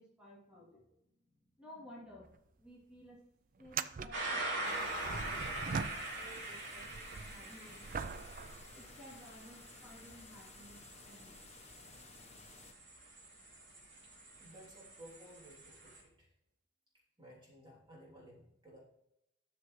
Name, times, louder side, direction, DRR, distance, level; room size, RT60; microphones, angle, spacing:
voice 1, 0.0-2.3 2.6-3.2 3.6-8.2 8.7-11.4, equal, 5° right, -7 dB, 2.8 m, -56 dB
sound 1, 2.2-2.4 2.7-2.8 3.6-6.4 6.8-9.4 10.1-10.2 14.4-14.5 15.9-16.0, right 5 dB, 45° right, 0.4 m, -43 dB
sound 2, 4.1-16.0, right 2 dB, 60° right, 3.3 m, -44 dB
sound 3, 4.6-12.7, left 4 dB, 35° left, 0.7 m, -57 dB
voice 2, 14.4-16.3 17.2-18.8, right 1 dB, 25° right, -4 dB, 3.2 m, -56 dB
12.5 x 6.6 x 3.2 m, 0.81 s
head